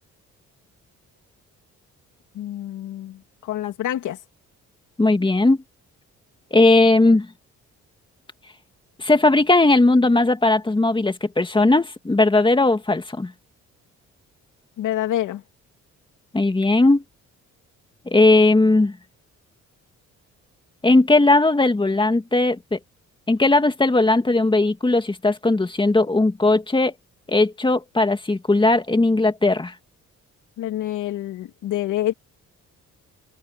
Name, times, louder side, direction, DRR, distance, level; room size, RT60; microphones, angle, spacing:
voice 1, 2.3-4.2 14.8-15.4 30.6-32.1, left 12 dB, 80° left, 3.1 m, -27 dB
voice 2, 5.0-5.6 6.5-7.3 9.0-13.3 16.3-17.0 18.1-19.0 20.8-22.8 23.3-26.9 27.3-29.7, left 2 dB, 15° left, 2.5 m, -18 dB
cardioid pair, 90°, 30 cm